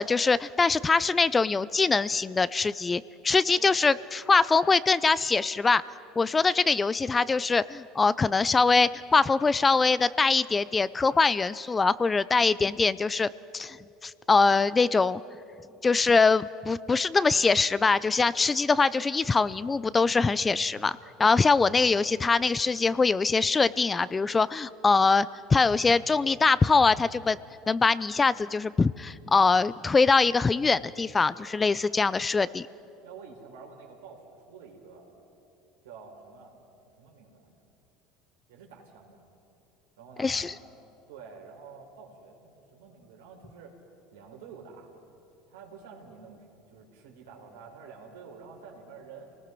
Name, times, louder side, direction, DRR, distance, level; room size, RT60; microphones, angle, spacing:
voice 1, 0.0-5.8 6.2-13.8 14.0-15.2 15.8-27.4 27.7-32.7 40.2-40.5, left 4 dB, 20° left, 18 dB, 0.5 m, -23 dB
voice 2, 33.0-35.1 35.8-36.6 37.0-37.6 38.5-39.2 40.0-40.5 41.1-43.8 44.1-44.9 45.5-49.2, right 5 dB, 85° right, 0 dB, 4.2 m, -48 dB
28.5 x 19.5 x 6.1 m, 2.7 s
hypercardioid pair, 90°, 0 cm